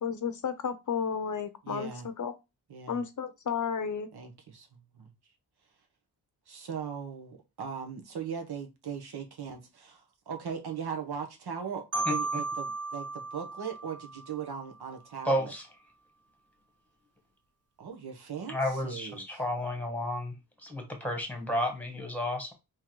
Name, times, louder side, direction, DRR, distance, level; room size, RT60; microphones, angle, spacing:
voice 1, 0.0-2.3 2.9-4.1, left 6 dB, 50° left, 0.6 m, -32 dB
voice 2, 1.6-2.1 2.7-3.0 4.1-4.7 4.9-5.1 6.5-15.5 17.8-19.4, right 7 dB, 75° right, 1.1 m, -39 dB
Marimba xylophone, 11.9-14.8, right 3 dB, 40° right, 1.1 m, -35 dB
voice 3, 15.2-15.6 18.5-20.3 20.6-22.5, left 1 dB, 5° left, 1.6 m, -31 dB
3.8 x 3.1 x 4.6 m
wide cardioid pair, 105°, 39 cm